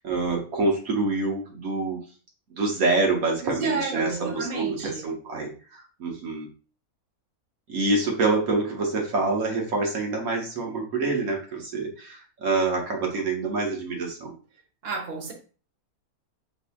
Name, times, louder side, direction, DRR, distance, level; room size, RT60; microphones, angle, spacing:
voice 1, 0.0-2.0 2.5-6.5 7.7-14.4, right 3 dB, 70° right, 0 dB, 1.3 m, -26 dB
voice 2, 3.4-5.1 14.8-15.3, right 4 dB, 45° right, 1 dB, 1.2 m, -31 dB
6.6 x 2.7 x 2.3 m, 0.38 s
omnidirectional pair, 1.6 m